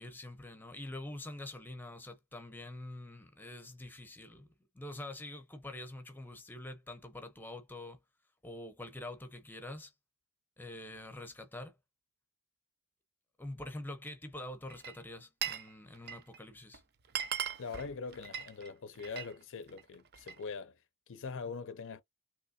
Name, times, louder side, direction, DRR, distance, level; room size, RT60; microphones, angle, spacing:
voice 1, 0.0-8.0 8.4-9.9 10.6-11.7 13.4-16.8, left 1 dB, 10° left, 0.7 m, -45 dB
Glass, 14.7-15.7 15.9-16.4 16.7-16.8 17.0-19.3 19.7-20.4, right 9 dB, 45° right, 0.6 m, -39 dB
voice 2, 17.6-20.8 21.1-22.0, left 5 dB, 60° left, 0.5 m, -42 dB
3.2 x 3.0 x 2.7 m
head